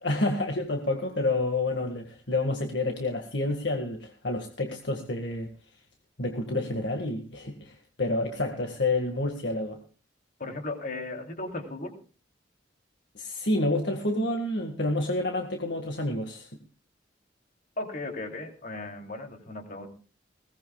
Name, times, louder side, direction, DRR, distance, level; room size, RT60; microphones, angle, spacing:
voice 1, 0.0-5.5 6.2-9.8 13.2-16.5, left 2 dB, 65° left, 4 dB, 1.8 m, -29 dB
voice 2, 10.4-11.9 17.8-19.9, left 2 dB, 45° left, 4 dB, 3.0 m, -36 dB
21.0 x 18.0 x 2.3 m, 0.37 s
head